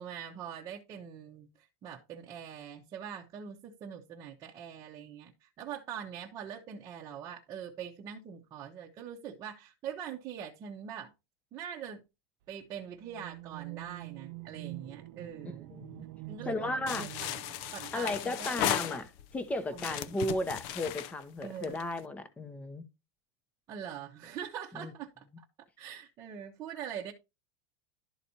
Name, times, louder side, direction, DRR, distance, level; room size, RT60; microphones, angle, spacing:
voice 1, 0.0-11.1 11.5-12.0 12.5-15.7 16.3-18.6 19.7-20.1 21.4-21.8 23.7-25.4 25.8-27.1, right 8 dB, 25° right, 0.9 m, -43 dB
sound 1, 13.0-19.0, right 18 dB, 60° right, 0.4 m, -46 dB
voice 2, 15.7-16.0 16.5-17.1 17.9-22.8 24.8-24.9, left 2 dB, 10° left, 0.8 m, -35 dB
sound 2, 16.9-19.3 19.7-22.0, left 11 dB, 50° left, 0.5 m, -36 dB
12.0 x 4.1 x 2.8 m
supercardioid pair, 160°, 13 cm